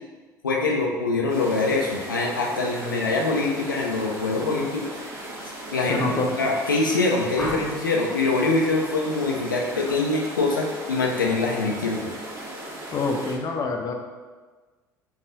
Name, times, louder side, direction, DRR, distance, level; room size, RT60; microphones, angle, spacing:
voice 1, 0.4-5.1 5.7-12.1, left 3 dB, 85° left, -1 dB, 0.5 m, -24 dB
sound 1, 1.3-13.4, right 1 dB, 30° right, 1.2 m, -37 dB
voice 2, 2.5-3.1 5.9-6.4 12.9-13.9, left 3 dB, 35° left, 2 dB, 0.6 m, -27 dB
sound 2, 7.3-8.0 9.7-10.0 10.4-10.8, left 1 dB, 5° left, 1.0 m, -35 dB
5.5 x 2.5 x 3.7 m, 1.3 s
figure-of-eight pair, 60°, 11 cm